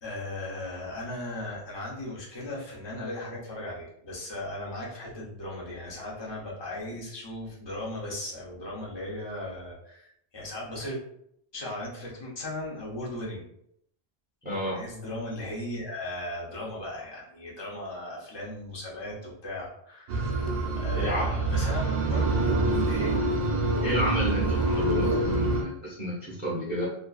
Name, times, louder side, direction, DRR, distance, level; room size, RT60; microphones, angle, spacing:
voice 1, 0.0-10.1 10.3-11.0 11.5-13.5 14.6-20.5 20.7-23.2, left 1 dB, 30° left, -4 dB, 0.7 m, -37 dB
voice 2, 14.4-14.8 20.9-21.3 23.8-26.9, equal, 10° right, -8 dB, 0.7 m, -31 dB
sound 1, 20.1-25.6, right 2 dB, 55° right, 0.5 m, -26 dB
2.4 x 2.3 x 2.3 m, 0.72 s
omnidirectional pair, 1.1 m